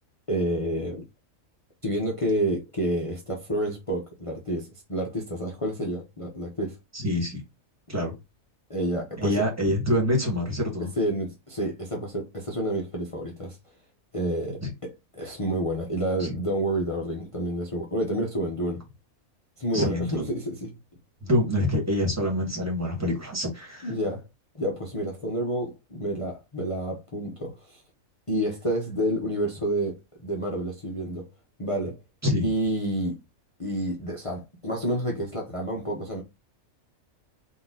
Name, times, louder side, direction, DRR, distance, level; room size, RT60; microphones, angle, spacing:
voice 1, 0.3-1.1 1.8-6.8 8.7-9.4 10.8-13.6 14.1-18.8 19.6-20.7 23.8-24.3 24.5-27.8 28.3-31.3 31.6-32.0 32.4-33.2 33.6-36.2, right 1 dB, 25° left, 0.8 m, -29 dB
voice 2, 6.9-7.4 7.9-8.1 9.2-10.9 14.6-14.7 16.2-16.4 19.7-20.3 21.2-23.9 32.2-32.5, left 1 dB, 10° right, 1.7 m, -26 dB
3.9 x 2.9 x 3.9 m
omnidirectional pair, 1.4 m